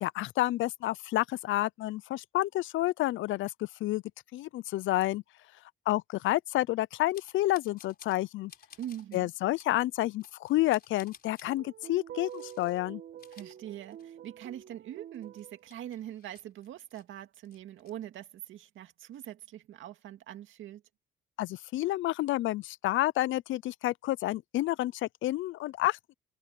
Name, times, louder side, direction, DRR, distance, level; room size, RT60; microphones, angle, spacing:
voice 1, 0.0-4.0 4.3-5.2 5.9-8.5 9.1-13.0 21.4-26.1, left 16 dB, 75° left, 0.5 m, -29 dB
sound 1, 7.1-8.2 8.5-9.2 9.6-9.7 10.2-11.6 12.2-12.8 13.1-14.3 14.6-14.7 15.1-17.0 17.4-17.9, left 7 dB, 50° left, 4.0 m, -56 dB
voice 2, 8.8-9.3 13.3-20.8, right 11 dB, 80° right, 2.0 m, -43 dB
sound 2, 11.4-15.6, right 10 dB, 65° right, 1.2 m, -47 dB
cardioid pair, 90°, 20 cm